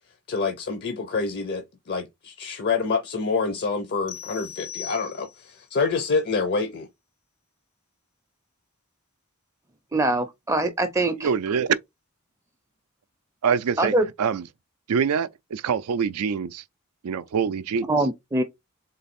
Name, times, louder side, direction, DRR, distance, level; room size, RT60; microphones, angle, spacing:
voice 1, 0.3-6.9, left 4 dB, 50° left, 0.6 m, -27 dB
sound 1, 4.1-5.6, left 9 dB, 85° left, 0.8 m, -39 dB
voice 2, 9.9-11.3 13.8-14.1 17.9-18.4, right 2 dB, 15° right, 0.5 m, -23 dB
voice 3, 11.2-11.8 13.4-13.9 14.2-14.5 14.9-16.6 17.0-17.9, right 6 dB, 90° right, 0.4 m, -24 dB
3.9 x 3.1 x 4.2 m
head